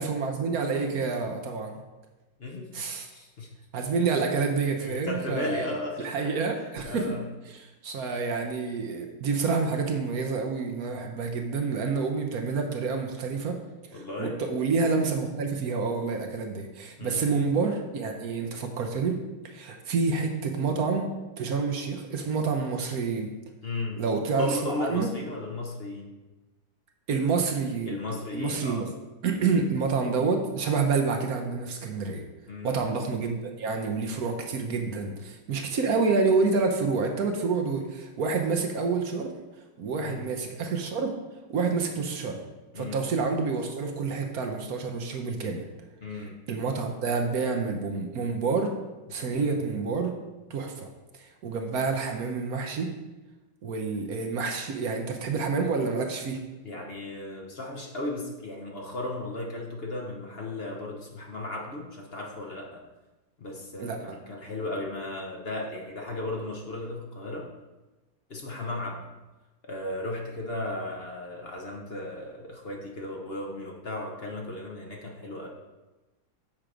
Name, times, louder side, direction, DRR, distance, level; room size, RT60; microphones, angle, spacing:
voice 1, 0.0-1.8 2.7-3.1 3.7-5.8 6.0-7.1 7.5-13.6 13.9-19.2 19.4-21.1 21.4-23.3 24.0-25.1 27.1-28.0 28.3-28.8 29.2-32.2 32.6-39.3 39.8-41.1 41.5-42.4 42.7-45.6 46.5-48.7 49.1-50.1 50.5-50.9 51.2-52.9 53.6-56.4 63.8-64.0, right 4 dB, 60° right, 4 dB, 1.1 m, -28 dB
voice 2, 2.4-3.5 4.8-6.4 6.8-7.2 13.9-14.4 17.0-17.3 23.6-24.0 24.4-26.1 27.9-28.9 29.4-29.5 32.5-32.8 40.0-40.3 42.7-43.0 46.0-46.4 49.2-49.5 56.6-62.8 63.4-67.5 68.3-69.0 69.6-75.5, left 2 dB, 40° left, 0 dB, 0.9 m, -35 dB
7.6 x 4.6 x 5.0 m, 1.1 s
omnidirectional pair, 2.0 m